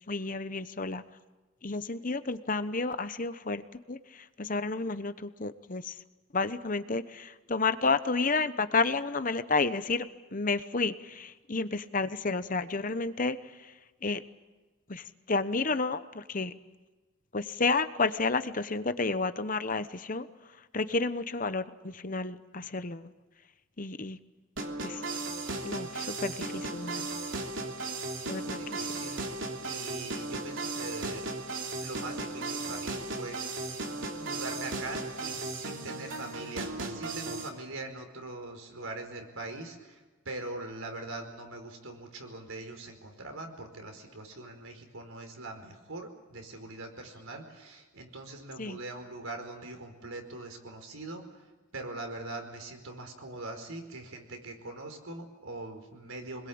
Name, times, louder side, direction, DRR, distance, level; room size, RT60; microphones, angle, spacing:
voice 1, 0.1-1.0 1.6-3.6 3.9-5.9 6.3-13.4 14.0-14.2 14.9-16.5 17.3-20.3 20.7-23.1 23.8-24.2 24.8-25.0 25.6-27.1 28.3-28.6 48.6-48.8, left 3 dB, 40° left, 12 dB, 0.9 m, -31 dB
sound 1, 24.6-37.5, right 2 dB, 60° right, 3.1 m, -36 dB
voice 2, 28.3-29.2 29.6-31.3 31.8-33.8 34.2-51.4 51.7-56.5, right 2 dB, 85° right, 4 dB, 4.9 m, -42 dB
26.5 x 21.5 x 8.8 m, 1.2 s
head